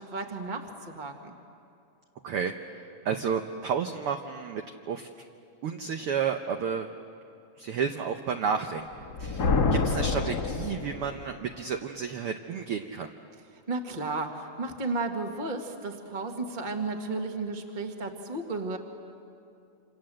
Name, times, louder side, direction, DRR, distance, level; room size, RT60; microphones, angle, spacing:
voice 1, 0.0-1.3 13.7-18.8, right 3 dB, 20° right, 3 dB, 1.3 m, -33 dB
voice 2, 2.2-5.1 5.6-6.9 7.6-13.1, right 6 dB, 70° right, 5 dB, 1.3 m, -32 dB
Thunder, 8.9-11.3, left 4 dB, 40° left, 1.6 m, -27 dB
28.0 x 27.0 x 7.7 m, 2.5 s
omnidirectional pair, 3.6 m